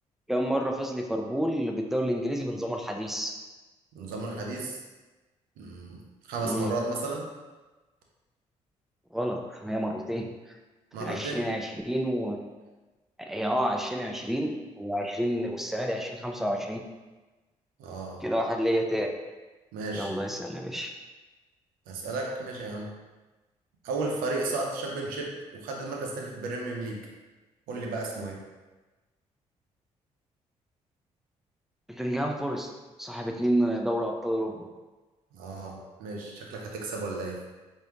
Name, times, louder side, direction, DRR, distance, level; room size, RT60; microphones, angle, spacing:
voice 1, 0.3-3.4 6.4-6.7 9.1-10.3 11.0-12.4 13.2-16.8 18.2-19.1 19.9-20.9 31.9-32.7 33.0-34.7, equal, ahead, 2 dB, 0.6 m, -29 dB
voice 2, 3.9-4.8 5.6-7.3 10.9-11.5 17.8-18.2 19.7-20.1 21.9-22.9 23.8-27.0 27.7-28.4 35.3-37.4, right 3 dB, 85° right, 0 dB, 0.7 m, -34 dB
4.7 x 2.7 x 2.9 m, 1.2 s
supercardioid pair, 55°, 15 cm